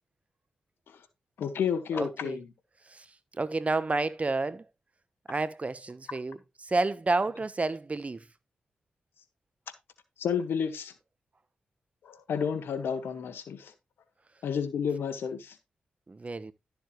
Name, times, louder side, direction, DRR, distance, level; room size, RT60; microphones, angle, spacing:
voice 1, 1.4-2.5 10.2-10.9 12.0-13.7 14.4-15.5, left 7 dB, 80° left, 1.5 m, -31 dB
voice 2, 1.9-2.4 2.9-3.1 3.3-4.6 5.3-8.2 16.1-16.5, right 3 dB, 35° right, 1.0 m, -30 dB
12.5 x 6.9 x 3.1 m
supercardioid pair, 45°, 4 cm